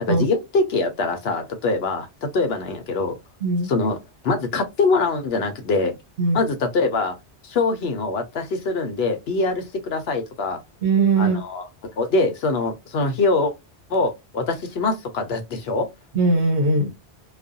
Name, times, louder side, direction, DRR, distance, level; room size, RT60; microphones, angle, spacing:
voice 1, 0.1-3.2 3.6-4.0 4.2-6.0 6.3-7.2 7.4-10.6 11.2-11.7 12.0-13.5 13.9-15.9, left 3 dB, 65° left, 0.9 m, -23 dB
voice 2, 10.8-11.4 16.1-16.9, right 3 dB, 75° right, 1.2 m, -19 dB
2.4 x 2.2 x 2.5 m
omnidirectional pair, 1.2 m